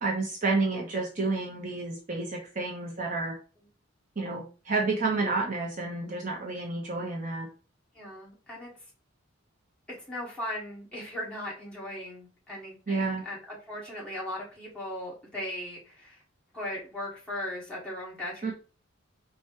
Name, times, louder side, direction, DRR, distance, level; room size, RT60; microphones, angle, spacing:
voice 1, 0.0-3.3 4.2-7.5 12.9-13.2 18.4-18.5, right 3 dB, 40° right, -1 dB, 0.8 m, -30 dB
voice 2, 7.9-8.7 9.9-16.2 16.5-18.5, left 1 dB, 5° left, -6 dB, 1.7 m, -38 dB
4.4 x 2.3 x 4.5 m, 0.36 s
head